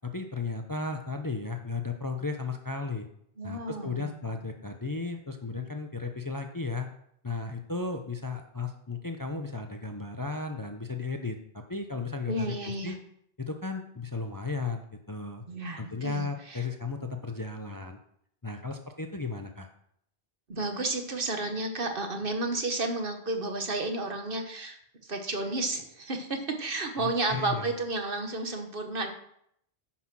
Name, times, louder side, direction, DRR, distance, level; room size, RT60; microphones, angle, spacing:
voice 1, 0.0-3.1 3.4-6.9 7.2-13.0 13.4-15.4 15.8-18.0 18.4-19.7 27.0-27.7, left 3 dB, 20° left, 5 dB, 0.7 m, -35 dB
voice 2, 3.4-4.4 12.3-12.9 15.5-16.6 20.5-29.1, right 2 dB, 55° right, 5 dB, 1.5 m, -32 dB
9.9 x 6.0 x 6.1 m, 0.70 s
omnidirectional pair, 1.1 m